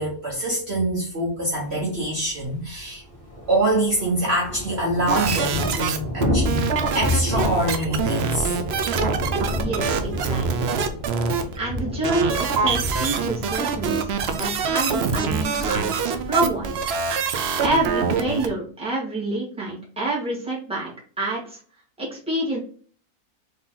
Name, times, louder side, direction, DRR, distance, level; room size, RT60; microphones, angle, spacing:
voice 1, 0.0-3.0 3.5-6.6 6.9-8.5 9.0-9.1, right 1 dB, 45° right, 1.3 m, -25 dB
Thunder / Rain, 1.9-2.0 2.2-2.3 2.6-18.5, left 1 dB, 30° right, 1.6 m, -30 dB
sound 1, 5.1-6.0 6.2-18.5, right 5 dB, 65° right, 0.6 m, -25 dB
voice 2, 9.6-10.7 11.6-16.7 17.6-20.9 21.2-21.6 22.0-22.6, right 2 dB, 5° right, 1.7 m, -27 dB
4.0 x 3.2 x 3.8 m
omnidirectional pair, 1.6 m